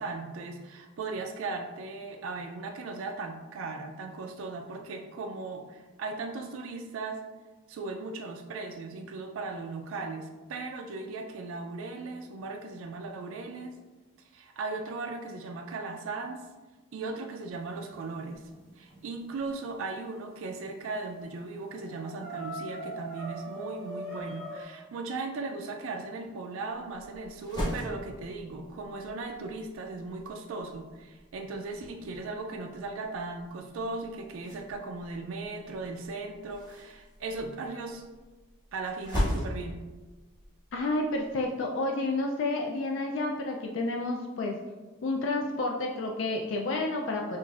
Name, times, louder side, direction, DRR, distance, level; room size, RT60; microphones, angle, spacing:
voice 1, 0.0-7.2 7.7-13.7 14.3-16.5 16.9-18.4 18.8-38.0 38.7-39.8, right 3 dB, 70° right, 3 dB, 0.3 m, -37 dB
sound 1, 17.6-19.4 20.8-20.9 21.2-21.3 21.6-24.6, right 1 dB, 5° left, 0.7 m, -42 dB
sound 2, 26.7-41.5, equal, 20° left, 1.1 m, -39 dB
voice 2, 40.7-44.6 45.0-47.4, left 2 dB, 60° left, 1 dB, 0.3 m, -30 dB
5.9 x 2.4 x 2.3 m, 1.2 s
head